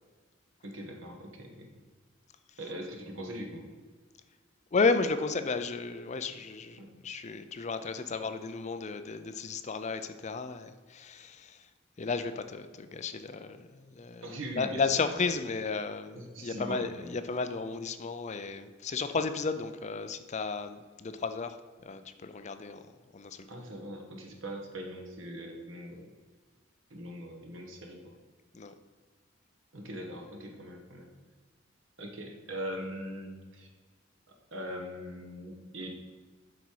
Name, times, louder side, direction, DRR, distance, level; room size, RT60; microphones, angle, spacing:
voice 1, 0.6-1.7 2.6-3.7 6.8-6.9 14.2-15.1 16.1-17.2 23.5-26.1 26.9-28.2 29.7-31.1 32.0-33.7 34.5-35.9, equal, 80° right, 2 dB, 1.5 m, -41 dB
voice 2, 4.7-11.7 12.0-23.5 28.5-28.7, left 4 dB, 35° left, 10 dB, 0.5 m, -33 dB
8.0 x 5.5 x 4.7 m, 1.4 s
head